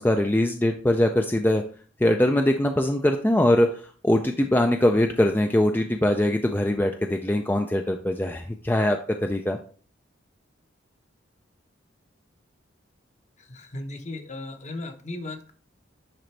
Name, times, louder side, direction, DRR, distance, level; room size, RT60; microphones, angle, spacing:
voice 1, 0.0-1.6 2.0-3.7 4.0-9.6, left 1 dB, 10° left, 4 dB, 0.4 m, -22 dB
voice 2, 13.4-15.5, left 2 dB, 35° left, 6 dB, 0.9 m, -36 dB
10.0 x 3.9 x 3.3 m, 0.43 s
head